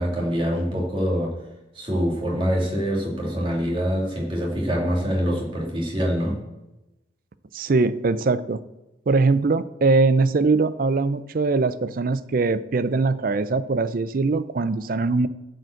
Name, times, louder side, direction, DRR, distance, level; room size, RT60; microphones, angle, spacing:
voice 1, 0.0-1.3 1.7-6.4, equal, 25° right, -1 dB, 2.4 m, -25 dB
voice 2, 7.5-8.6 9.1-15.3, right 3 dB, 45° right, 14 dB, 0.4 m, -21 dB
11.5 x 5.1 x 7.6 m, 0.99 s
head